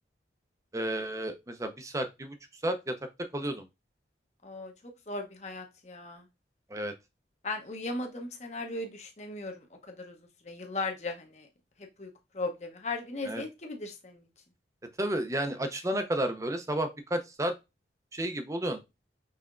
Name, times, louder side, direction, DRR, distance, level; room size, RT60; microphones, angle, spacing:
voice 1, 0.7-2.4 2.6-3.0 3.3-3.7 6.7-6.9 13.2-13.4 15.0-17.5 18.1-18.8, right 1 dB, 15° right, 7 dB, 0.6 m, -31 dB
voice 2, 4.4-6.2 7.4-10.2 10.4-11.5 11.8-14.2, left 2 dB, 35° left, 4 dB, 0.9 m, -37 dB
5.6 x 3.4 x 2.4 m, 0.24 s
head